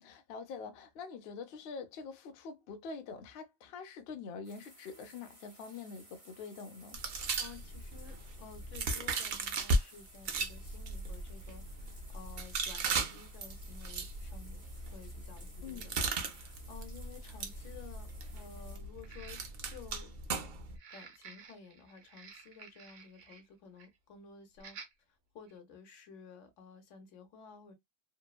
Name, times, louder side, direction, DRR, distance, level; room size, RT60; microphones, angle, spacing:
voice 1, 0.0-7.0 15.6-15.9, left 5 dB, 65° left, 0.7 m, -45 dB
sound 1, 4.4-18.8, right 1 dB, 30° right, 0.9 m, -58 dB
sound 2, 6.9-9.8 10.2-20.8, right 3 dB, 60° right, 0.7 m, -37 dB
voice 2, 7.1-14.6 14.9-20.2 20.9-24.8 25.3-27.7, left 5 dB, 90° left, 1.1 m, -54 dB
sound 3, 14.3-14.4 15.4-15.5 15.9-16.0 19.0-19.8 20.7-23.5 23.8-24.0 24.6-24.9 25.5-25.6, right 6 dB, 85° right, 1.0 m, -53 dB
2.9 x 2.0 x 2.3 m
omnidirectional pair, 1.2 m